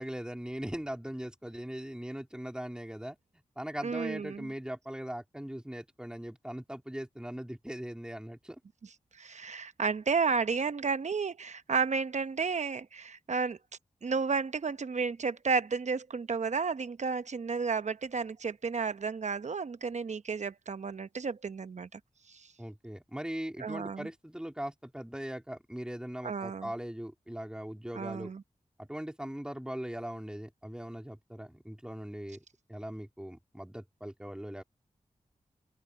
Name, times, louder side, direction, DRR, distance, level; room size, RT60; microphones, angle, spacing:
voice 1, 0.0-3.2 3.6-8.6 22.6-28.3 28.8-32.4 32.7-34.6, equal, 5° right, 3.5 m, -40 dB
voice 2, 3.8-4.5 9.2-13.6 14.0-22.0 22.3-22.5 23.6-24.1 26.2-26.7 27.9-28.4, right 5 dB, 65° right, 0.9 m, -32 dB
open air
cardioid pair, 50°, 13 cm